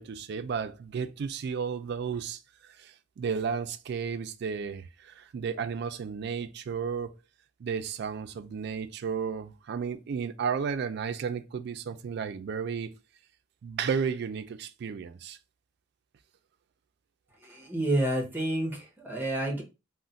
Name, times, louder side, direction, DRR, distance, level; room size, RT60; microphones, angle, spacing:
voice 1, 0.0-7.1 7.6-12.9 13.6-15.4, right 6 dB, 60° right, 0.3 m, -33 dB
voice 2, 17.4-19.6, right 1 dB, 10° right, 0.8 m, -29 dB
2.4 x 2.1 x 3.8 m
head